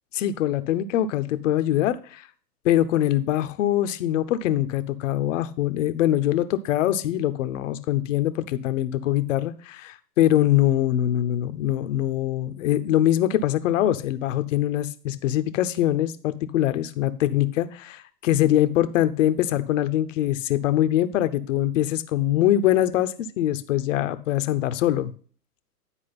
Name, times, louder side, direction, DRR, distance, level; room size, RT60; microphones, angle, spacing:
voice 1, 0.2-2.3 2.6-25.1, left 12 dB, 55° left, 12 dB, 0.8 m, -23 dB
9.9 x 4.7 x 5.7 m, 0.43 s
hypercardioid pair, 115°, 47 cm